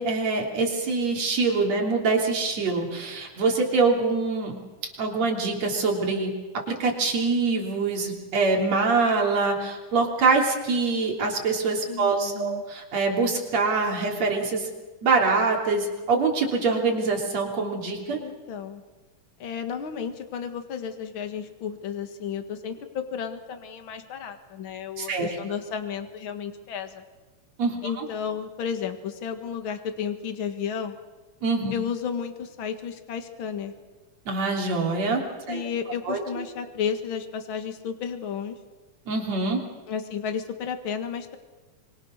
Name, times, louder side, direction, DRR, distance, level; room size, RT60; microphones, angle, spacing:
voice 1, 0.0-4.6 4.8-14.7 15.0-18.2 25.0-25.4 27.6-28.1 31.4-31.7 34.3-35.7 36.1-36.4 39.1-39.6, right 4 dB, 55° right, 0 dB, 4.5 m, -24 dB
voice 2, 11.9-12.7 18.2-18.8 19.4-27.0 27.8-30.9 31.7-33.7 35.5-38.6 39.9-41.4, left 7 dB, 45° left, 8 dB, 2.2 m, -32 dB
25.5 x 22.5 x 6.5 m, 1.2 s
omnidirectional pair, 3.7 m